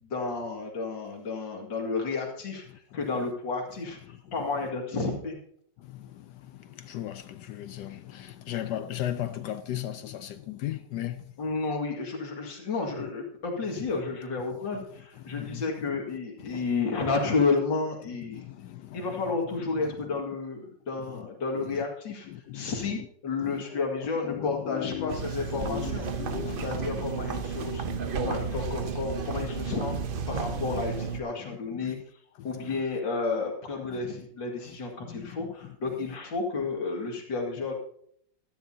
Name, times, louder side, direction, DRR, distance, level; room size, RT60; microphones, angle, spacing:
voice 1, 0.0-5.4 11.4-18.4 18.9-22.3 22.5-26.1 26.4-29.9 30.3-32.0 32.4-37.7, left 4 dB, 90° left, 2.8 m, -31 dB
voice 2, 2.7-3.1 4.1-4.2 5.8-11.3 14.7-16.0 18.3-19.2 19.6-20.2 21.0-21.3 21.6-21.8 22.3-23.1 23.4-25.2 25.5-27.0 27.9-28.5 29.3-29.7 30.4-30.7 31.4-32.0 32.4-32.8 33.9-34.1 34.7-35.8, left 12 dB, 75° left, 1.1 m, -38 dB
sound 1, 25.1-31.2, right 6 dB, 55° right, 0.6 m, -32 dB
16.0 x 13.0 x 2.8 m
omnidirectional pair, 2.0 m